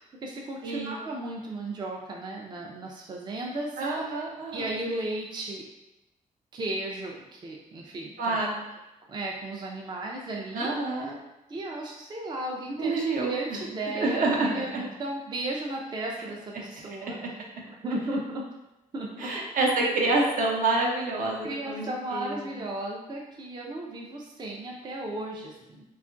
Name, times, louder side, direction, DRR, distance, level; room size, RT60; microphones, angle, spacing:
voice 1, 0.0-3.8 4.5-5.7 6.5-8.4 9.1-11.0 11.5-17.3 17.7-18.5 18.9-19.3 21.4-25.8, right 1 dB, 30° right, -1 dB, 0.4 m, -35 dB
voice 2, 0.6-1.0 3.8-4.7 8.2-8.6 10.5-11.2 12.8-13.6 13.9-14.9 17.2-17.3 19.2-22.6, right 2 dB, 70° right, -2 dB, 0.7 m, -28 dB
2.8 x 2.3 x 2.5 m, 0.96 s
cardioid pair, 80°, 15 cm